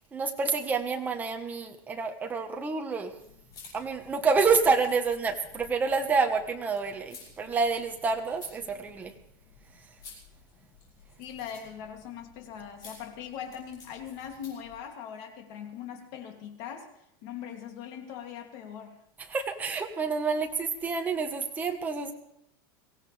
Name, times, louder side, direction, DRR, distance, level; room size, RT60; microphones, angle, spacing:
voice 1, 0.1-3.1 3.7-9.1 19.3-22.1, right 4 dB, 15° right, 4 dB, 1.4 m, -28 dB
sound 1, 3.1-14.8, left 4 dB, 35° left, 6.7 m, -53 dB
voice 2, 11.2-19.0, left 8 dB, 50° left, 3 dB, 2.8 m, -41 dB
23.0 x 16.5 x 3.5 m, 0.77 s
supercardioid pair, 160°, 12 cm